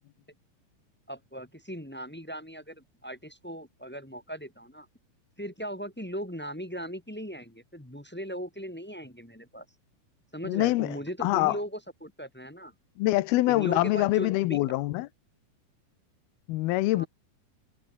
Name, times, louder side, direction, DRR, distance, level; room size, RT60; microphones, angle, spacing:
voice 1, 1.1-4.9 5.4-9.6 10.3-12.7 13.5-14.6 16.9-17.0, equal, 5° left, 0.8 m, -38 dB
voice 2, 10.5-11.6 13.0-15.1 16.5-17.1, left 18 dB, 90° left, 2.7 m, -25 dB
omnidirectional pair, 4.3 m